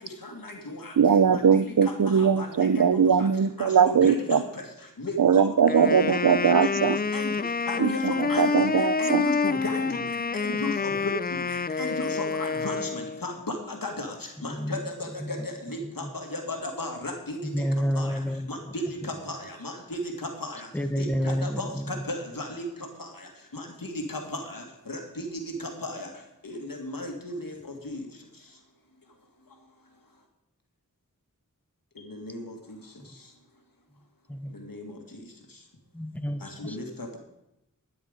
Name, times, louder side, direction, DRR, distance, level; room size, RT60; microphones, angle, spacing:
voice 1, 0.2-0.9 1.3-1.6 2.2-2.7 3.2-3.3 3.6-4.6 5.0-5.8 6.1-6.2 7.1-7.3 7.7-8.5 9.0-10.0 10.3-14.1 14.4-17.5 18.0-18.1 18.5-20.7 21.0-22.6 23.0-23.1 23.5-25.3 25.6-26.1 26.4-27.5 27.8-28.0 32.1-32.5 34.7-34.9 36.4-37.2, left 2 dB, 85° left, 3 dB, 2.2 m, -35 dB
voice 2, 1.0-4.4 5.2-7.0 7.8-9.3, right 7 dB, 70° right, 16 dB, 0.6 m, -21 dB
Wind instrument woodwind instrument, 5.7-13.3, left 4 dB, 30° left, 0.4 m, -28 dB
voice 3, 14.5-14.9 15.2-15.5 15.8-16.1 17.4-18.7 20.7-22.0 33.0-33.1 34.3-34.5 35.9-36.8, equal, 5° left, 9 dB, 0.9 m, -30 dB
12.5 x 9.3 x 5.2 m, 0.85 s
wide cardioid pair, 45°, 33 cm